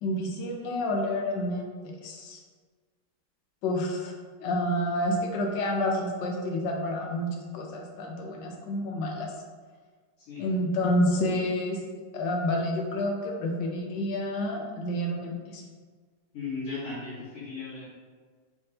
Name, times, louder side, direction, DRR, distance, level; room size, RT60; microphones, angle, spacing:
voice 1, 0.0-1.7 2.0-2.4 3.6-4.1 4.4-9.3 10.4-11.8 12.1-15.6, left 1 dB, 80° left, 1 dB, 1.3 m, -29 dB
voice 2, 16.3-17.9, left 4 dB, 65° left, -11 dB, 1.9 m, -36 dB
3.4 x 3.4 x 2.7 m, 1.5 s
omnidirectional pair, 1.9 m